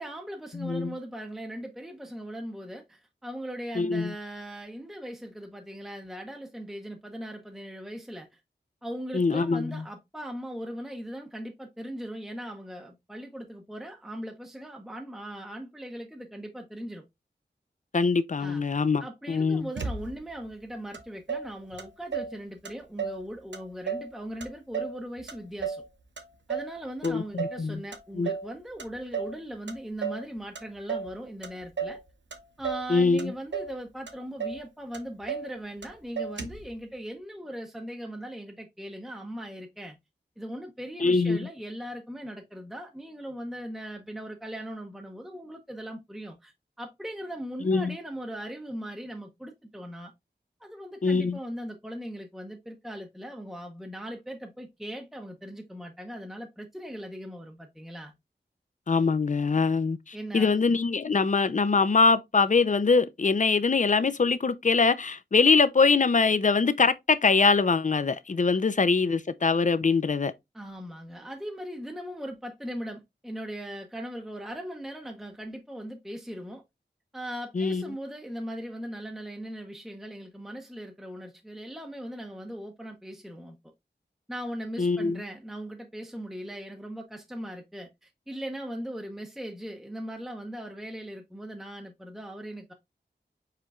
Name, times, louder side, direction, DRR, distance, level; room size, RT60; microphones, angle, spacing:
voice 1, 0.0-8.4 8.8-17.0 18.4-25.8 26.5-32.0 32.6-40.0 40.4-50.1 50.6-58.1 60.1-60.5 70.5-76.6 77.1-83.6 84.3-92.7, equal, ahead, 0.7 m, -39 dB
voice 2, 0.5-0.9 3.8-4.1 9.1-9.8 17.9-19.7 27.0-27.8 28.1-28.3 32.9-33.3 41.0-41.5 47.6-47.9 51.0-51.4 58.9-70.3 77.5-77.8 84.8-85.2, left 4 dB, 45° left, 0.5 m, -23 dB
Motor vehicle (road), 19.8-20.4 20.9-21.0 21.3-22.4 22.6-23.2 23.5-24.1 24.4-25.9 26.2-26.8 27.0-27.6 27.9-28.5 28.8-29.4 29.7-30.3 30.6-31.1 31.4-32.0 32.3-32.9 33.2-33.8 34.1-34.2 34.4-34.6 34.9-35.5 35.8-35.9 36.2-36.7, right 6 dB, 85° right, 0.8 m, -34 dB
4.9 x 4.3 x 2.3 m
wide cardioid pair, 65°, 19 cm